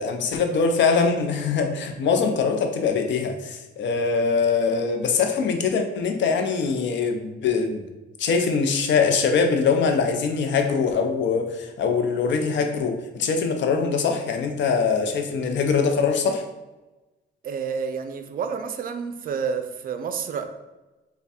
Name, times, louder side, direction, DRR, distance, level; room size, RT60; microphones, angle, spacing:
voice 1, 0.0-7.9 8.2-16.4, left 5 dB, 65° left, 5 dB, 0.6 m, -23 dB
voice 2, 17.4-20.5, right 6 dB, 45° right, 8 dB, 0.4 m, -29 dB
3.4 x 2.3 x 4.1 m, 1.1 s
cardioid pair, 90°, 20 cm